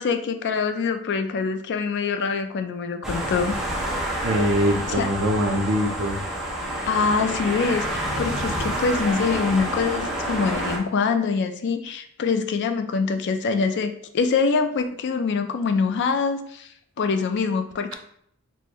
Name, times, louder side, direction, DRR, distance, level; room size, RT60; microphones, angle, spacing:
voice 1, 0.0-3.6 4.9-5.1 6.9-16.7 17.0-17.9, left 5 dB, 50° left, 8 dB, 0.3 m, -24 dB
sound 1, 3.0-10.8, right 1 dB, ahead, 0.7 m, -28 dB
voice 2, 4.2-6.2, equal, 60° right, 4 dB, 0.5 m, -23 dB
3.7 x 2.5 x 2.9 m, 0.67 s
head